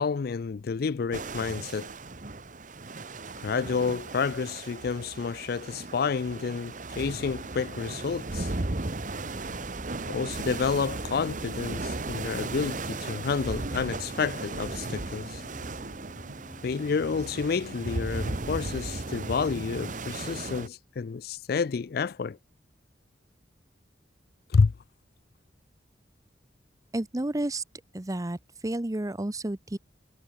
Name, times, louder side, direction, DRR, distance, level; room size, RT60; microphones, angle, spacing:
voice 1, 0.0-1.9 3.4-8.5 10.1-15.4 16.6-22.4 24.5-24.7, left 5 dB, 55° left, 0.4 m, -29 dB
sound 1, 1.1-20.7, right 2 dB, 45° right, 1.3 m, -36 dB
sound 2, 7.2-19.5, left 1 dB, 40° left, 2.7 m, -52 dB
voice 2, 26.9-27.6 27.9-28.4 28.6-29.8, right 1 dB, 20° right, 0.7 m, -30 dB
head